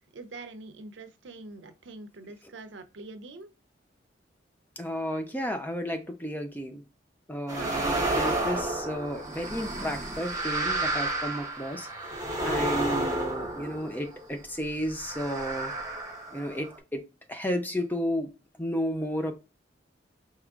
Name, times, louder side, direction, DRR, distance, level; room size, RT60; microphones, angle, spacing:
voice 1, 0.1-3.5 7.5-7.8, right 3 dB, 85° right, 0.6 m, -44 dB
voice 2, 4.8-6.8 7.3-11.9 12.4-15.7 16.3-17.0 17.3-18.3 18.6-19.3, equal, 10° left, 0.5 m, -32 dB
sound 1, 7.5-14.3 14.9-16.8, right 2 dB, 20° right, 1.0 m, -31 dB
4.6 x 2.9 x 2.4 m
head